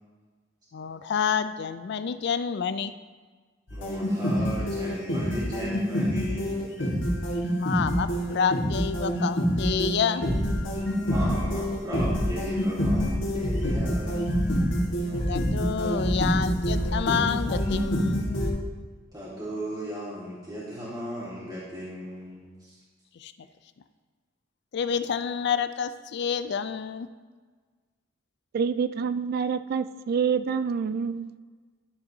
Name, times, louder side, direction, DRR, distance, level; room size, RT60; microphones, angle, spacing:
voice 1, 0.7-2.9 7.6-10.2 15.3-18.3 23.2-23.3 24.7-27.1, left 7 dB, 60° left, 12 dB, 0.4 m, -28 dB
sound 1, 3.7-18.5, equal, 75° left, 1.6 m, -26 dB
voice 2, 3.7-6.7 11.0-14.4 19.1-22.8, equal, 20° right, -9 dB, 1.9 m, -36 dB
voice 3, 28.5-31.3, right 6 dB, 50° right, 14 dB, 0.3 m, -27 dB
12.0 x 6.9 x 2.7 m, 1.4 s
head